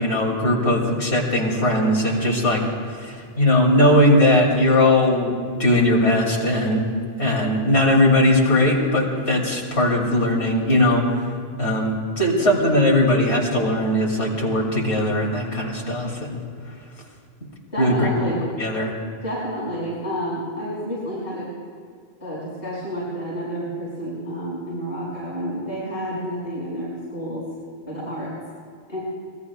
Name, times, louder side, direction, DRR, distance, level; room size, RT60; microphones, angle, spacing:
voice 1, 0.0-2.6 3.0-6.9 7.2-11.2 11.6-16.4 17.8-18.1 18.6-18.9, left 1 dB, 70° left, -2 dB, 3.1 m, -19 dB
voice 2, 17.7-18.5 19.2-21.5 22.2-27.4 27.9-28.3 28.9-29.0, equal, 55° left, -9 dB, 5.8 m, -29 dB
26.0 x 20.0 x 2.4 m, 2.2 s
omnidirectional pair, 1.1 m